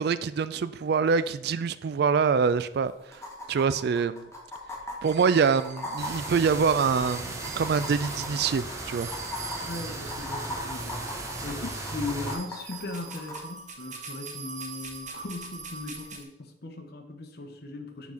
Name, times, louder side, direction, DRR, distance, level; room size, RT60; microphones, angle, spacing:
voice 1, 0.0-3.2 3.5-4.3 5.0-9.1, right 5 dB, 60° right, 15 dB, 0.3 m, -25 dB
sound 1, 2.1-2.2 2.4-2.5 3.1-13.4 15.1-15.2, left 1 dB, 15° left, 1.2 m, -39 dB
sound 2, 5.0-16.2, right 5 dB, 45° right, 1.0 m, -44 dB
sound 3, 6.0-12.4, right 2 dB, 15° right, 0.9 m, -37 dB
voice 2, 9.6-18.1, left 2 dB, 60° left, 6 dB, 0.9 m, -38 dB
6.0 x 3.8 x 5.7 m, 0.84 s
head